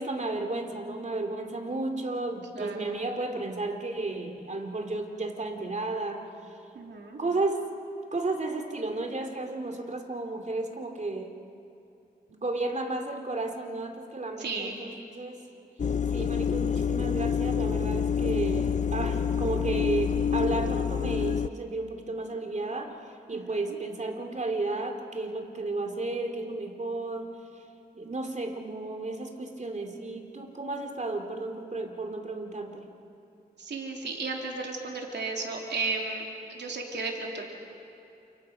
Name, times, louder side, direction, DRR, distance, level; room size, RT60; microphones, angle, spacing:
voice 1, 0.0-6.6 7.2-7.7 8.1-11.3 12.3-15.5 16.1-27.6 27.9-32.9, right 2 dB, 45° right, 4 dB, 2.9 m, -33 dB
voice 2, 2.5-3.0 6.7-7.2 14.4-14.8 23.3-23.8 33.6-36.2 36.5-37.4, right 3 dB, 85° right, 0 dB, 3.3 m, -34 dB
sound 1, 15.8-21.5, left 7 dB, 45° left, 0.5 m, -27 dB
29.0 x 28.5 x 5.8 m, 2.7 s
cardioid pair, 60°, 17 cm